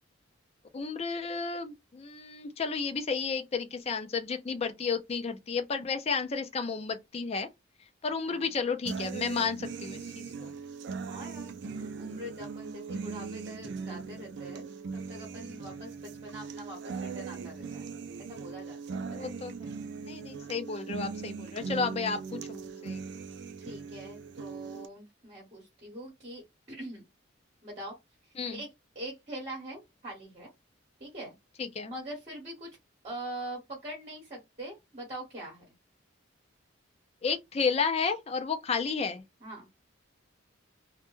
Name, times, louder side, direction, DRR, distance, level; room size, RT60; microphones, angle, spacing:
voice 1, 0.7-7.5 8.0-10.5 19.1-19.7 20.0-23.0 28.4-28.6 31.6-31.9 37.2-39.2, left 5 dB, 30° left, 0.4 m, -32 dB
voice 2, 8.2-8.7 11.1-14.6 15.1-16.0 16.2-17.9 18.2-19.4 23.6-26.4 26.7-27.0 27.6-27.9 28.5-30.5 31.0-31.3 31.9-32.7 33.0-35.6 39.4-39.7, right 1 dB, 30° right, 1.1 m, -43 dB
sound 1, 8.9-24.9, right 5 dB, 55° right, 0.3 m, -40 dB
2.1 x 2.1 x 3.0 m
head